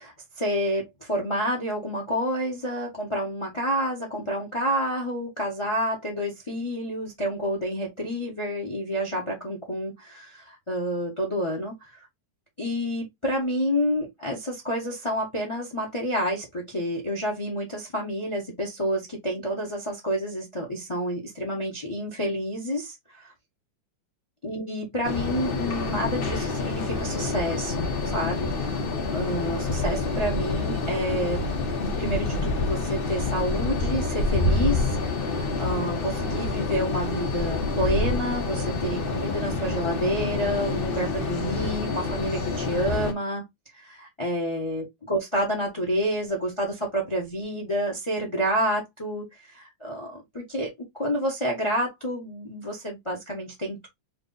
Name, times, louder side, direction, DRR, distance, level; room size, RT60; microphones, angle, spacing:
voice 1, 0.0-12.1 12.6-23.3 24.4-31.5 31.8-43.4 43.7-53.9, equal, 25° left, 0.6 m, -29 dB
sound 1, 25.0-43.1, left 3 dB, 60° left, 0.5 m, -27 dB
3.2 x 2.5 x 3.8 m
omnidirectional pair, 2.1 m